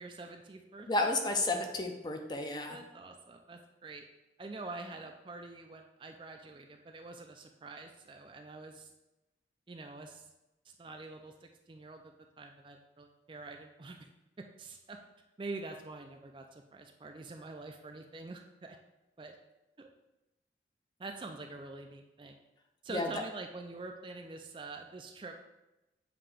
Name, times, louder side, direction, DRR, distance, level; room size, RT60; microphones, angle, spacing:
voice 1, 0.0-1.1 2.7-4.1 4.4-8.9 9.7-10.2 10.7-14.1 14.4-15.0 15.4-18.8 19.2-19.4 19.8-19.9 21.0-22.4 22.8-25.3, right 3 dB, 30° right, 4 dB, 0.4 m, -46 dB
voice 2, 0.9-2.8 22.9-23.1, left 2 dB, 25° left, 3 dB, 0.6 m, -32 dB
7.7 x 2.9 x 4.9 m, 0.97 s
head